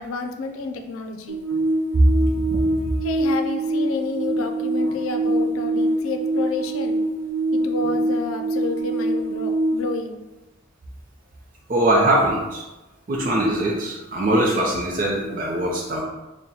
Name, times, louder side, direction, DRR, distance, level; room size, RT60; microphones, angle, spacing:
voice 1, 0.0-1.4 3.0-7.0 7.5-10.2, left 3 dB, 85° left, 5 dB, 0.5 m, -30 dB
sound 1, 1.3-9.8, right 2 dB, 70° right, 1.0 m, -24 dB
voice 2, 11.7-12.6 13.1-16.0, right 1 dB, 40° right, -3 dB, 0.6 m, -21 dB
4.3 x 2.2 x 3.8 m, 1.0 s
head